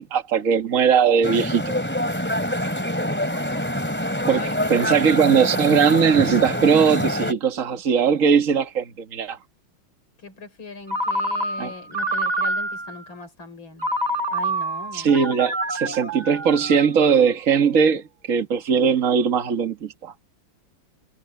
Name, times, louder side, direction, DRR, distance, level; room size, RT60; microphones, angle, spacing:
voice 1, 0.0-1.6 4.3-4.4 4.7-9.4 11.6-11.7 14.9-20.1, right 6 dB, 40° right, 2.0 m, -19 dB
sound 1, 1.2-7.3, equal, 5° left, 3.4 m, -25 dB
voice 2, 2.9-3.7 4.0-5.1 10.2-13.9 14.3-15.2, left 3 dB, 75° left, 5.7 m, -40 dB
Ringtone, 10.9-13.0 13.8-17.1, right 1 dB, 20° right, 1.6 m, -27 dB
omnidirectional pair, 2.2 m